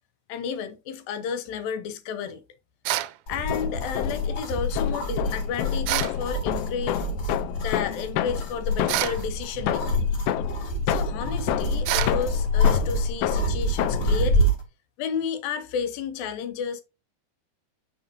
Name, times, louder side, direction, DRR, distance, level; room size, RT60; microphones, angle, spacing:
voice 1, 0.3-2.4 3.3-10.1 10.9-14.5 15.0-16.8, left 7 dB, 75° left, 2.6 m, -32 dB
sound 1, 2.8-3.2 5.9-6.2 8.9-9.2 11.9-12.2, right 16 dB, 85° right, 2.6 m, -26 dB
sound 2, 3.3-4.4 4.8-9.3 9.7-14.2, left 14 dB, 90° left, 1.9 m, -30 dB
sound 3, 3.3-14.6, left 1 dB, 50° left, 2.6 m, -27 dB
7.2 x 5.4 x 2.6 m
omnidirectional pair, 4.5 m